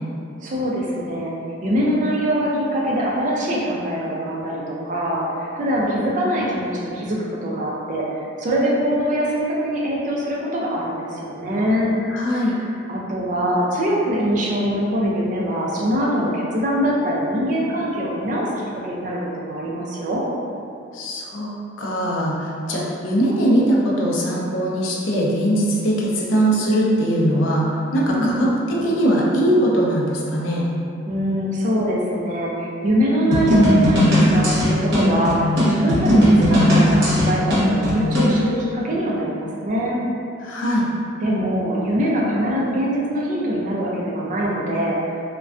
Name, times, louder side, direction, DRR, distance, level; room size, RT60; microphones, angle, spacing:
voice 1, 0.4-1.3 1.6-8.0 8.4-11.9 12.9-18.5 18.7-20.2 28.0-28.5 31.1-35.4 35.7-40.0 41.2-45.0, equal, 40° right, -4 dB, 0.4 m, -23 dB
voice 2, 12.1-12.5 20.9-21.5 21.8-30.7 40.4-40.9, right 1 dB, 80° left, -4 dB, 0.4 m, -21 dB
sound 1, 33.3-38.4, equal, 55° right, 0.9 m, -17 dB
2.4 x 2.1 x 2.3 m, 2.5 s
head